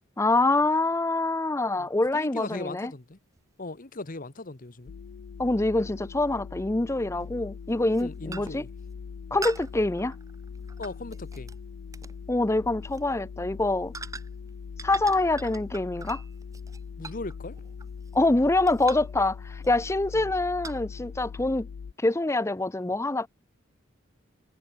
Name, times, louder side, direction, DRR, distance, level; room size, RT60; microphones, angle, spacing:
voice 1, 0.2-2.9 5.4-8.6 9.3-10.1 12.3-13.9 14.8-16.2 18.1-21.7 22.0-23.3, left 2 dB, 15° left, 0.5 m, -25 dB
voice 2, 2.1-3.2 3.6-4.9 8.0-8.7 10.8-11.5 17.0-17.6 20.1-20.3, left 2 dB, 40° left, 1.2 m, -38 dB
sound 1, 3.4-3.5 5.9-6.0 7.2-7.4 7.8-8.0 8.3-8.7 9.4-11.6 11.9-12.2 12.8-13.0 13.9-14.5 14.8-18.3 18.7-19.2 19.6-19.9 20.6-20.8, right 3 dB, 15° right, 1.1 m, -42 dB
sound 2, 4.9-21.9, left 6 dB, 85° left, 0.4 m, -41 dB
head